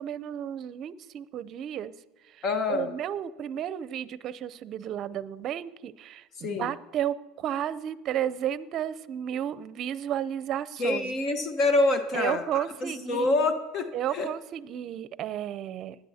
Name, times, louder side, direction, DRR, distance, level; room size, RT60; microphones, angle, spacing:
voice 1, 0.0-1.9 2.4-11.2 12.1-13.4 13.9-16.0, right 10 dB, 50° right, 16 dB, 0.6 m, -33 dB
voice 2, 2.4-2.9 6.4-6.7 10.8-14.3, left 2 dB, 45° left, 7 dB, 1.2 m, -26 dB
20.0 x 11.0 x 2.8 m, 1.2 s
hypercardioid pair, 90°, 0 cm